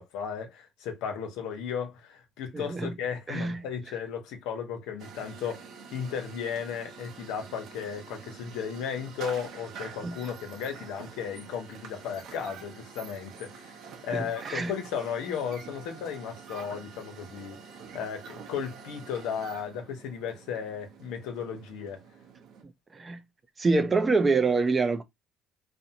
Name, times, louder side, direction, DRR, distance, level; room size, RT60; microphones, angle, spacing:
voice 1, 0.0-5.6 5.9-22.0, left 7 dB, 85° left, 0.7 m, -35 dB
voice 2, 2.5-2.9 3.3-3.6 10.0-10.1 14.1-14.7 22.9-23.2 23.6-25.0, right 3 dB, 30° right, 0.5 m, -26 dB
sound 1, 5.0-22.6, right 6 dB, 70° right, 0.7 m, -47 dB
2.6 x 2.1 x 2.7 m
cardioid pair, 90°, 0 cm